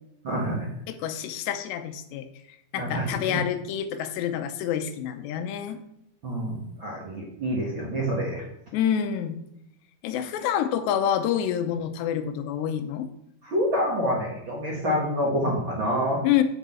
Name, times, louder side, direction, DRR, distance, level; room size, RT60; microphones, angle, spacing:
voice 1, 0.2-0.7 2.7-3.4 6.2-8.4 13.4-16.2, equal, 45° right, -3 dB, 1.7 m, -27 dB
voice 2, 0.9-2.3 2.7-5.8 8.7-9.4 10.0-13.1 16.2-16.4, left 9 dB, 85° left, 9 dB, 3.0 m, -27 dB
8.1 x 6.6 x 7.7 m, 0.78 s
omnidirectional pair, 4.8 m